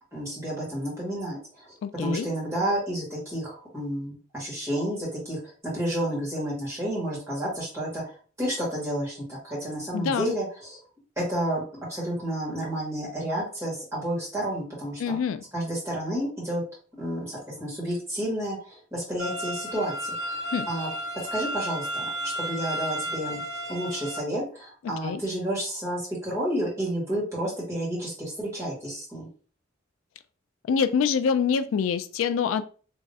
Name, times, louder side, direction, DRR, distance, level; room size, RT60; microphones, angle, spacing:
voice 1, 0.1-1.7 2.0-8.0 8.4-10.8 11.2-15.2 15.5-16.6 17.0-20.1 20.7-20.9 21.3-23.4 23.7-29.3, right 1 dB, 15° right, -7 dB, 1.9 m, -30 dB
voice 2, 1.8-2.3 9.9-10.3 15.0-15.4 20.5-20.7 25.0-25.2 30.7-32.6, left 6 dB, 85° left, 12 dB, 0.3 m, -25 dB
sound 1, 19.2-24.2, equal, 60° right, 1.2 m, -33 dB
3.5 x 3.0 x 2.7 m, 0.39 s
head